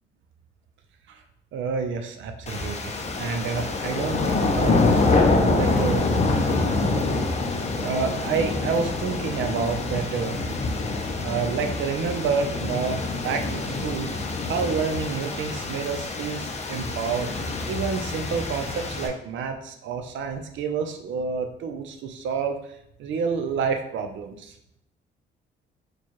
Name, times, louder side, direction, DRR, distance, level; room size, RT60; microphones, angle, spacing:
voice 1, 1.5-4.9 5.3-6.0 7.8-10.4 11.2-14.1 14.5-17.3 17.7-22.6 23.0-24.5, right 5 dB, 75° right, 6 dB, 0.5 m, -29 dB
sound 1, 2.5-19.1, left 3 dB, 35° left, 0.5 m, -26 dB
4.4 x 2.3 x 3.0 m, 0.75 s
cardioid pair, 90°, 20 cm